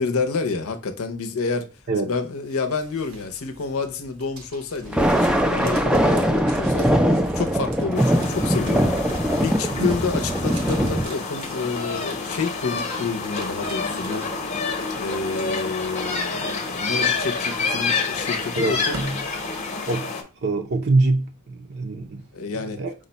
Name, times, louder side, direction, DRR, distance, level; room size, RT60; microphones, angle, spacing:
voice 1, 0.0-1.7 2.0-14.3 15.0-19.0 22.3-22.8, left 4 dB, 80° left, 0.7 m, -29 dB
sound 1, 2.4-20.2, right 2 dB, 85° right, 1.0 m, -43 dB
Thunder, 4.8-11.1, equal, 5° right, 0.4 m, -21 dB
sound 2, 7.9-20.2, left 4 dB, 35° left, 0.8 m, -28 dB
voice 2, 20.4-22.2 22.8-22.9, right 3 dB, 50° right, 0.6 m, -23 dB
5.0 x 2.2 x 3.9 m
head